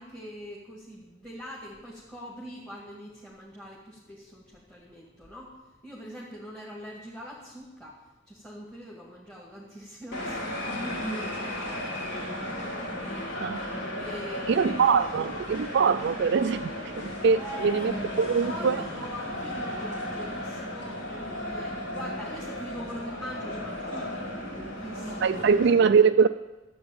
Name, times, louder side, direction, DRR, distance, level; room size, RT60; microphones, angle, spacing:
voice 1, 0.0-5.6 5.8-10.8 11.1-12.8 14.0-14.9 17.3-18.0 18.4-25.4, equal, 5° left, -4 dB, 2.1 m, -43 dB
sound 1, 10.1-25.7, left 1 dB, 60° left, 3.3 m, -35 dB
voice 2, 14.5-17.9 18.2-18.8 25.2-26.3, right 6 dB, 55° right, 9 dB, 0.3 m, -23 dB
13.0 x 7.9 x 9.0 m, 1.2 s
head